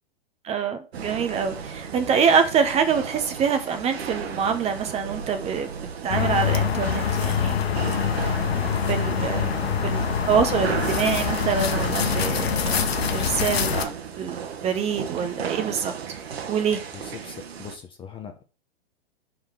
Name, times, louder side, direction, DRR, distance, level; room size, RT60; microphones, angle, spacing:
voice 1, 0.4-5.7 6.0-7.7 8.9-9.4 9.8-12.8 13.1-13.9 14.2-14.4 14.6-15.9 16.5-16.8, right 6 dB, 20° right, 0.9 m, -25 dB
sound 1, 0.9-17.8, right 7 dB, 85° right, 1.2 m, -35 dB
sound 2, 6.1-13.9, left 7 dB, 85° left, 1.0 m, -25 dB
voice 2, 9.3-9.9 16.9-18.4, left 7 dB, 15° left, 0.7 m, -39 dB
5.2 x 4.0 x 4.6 m
hypercardioid pair, 130°, 30 cm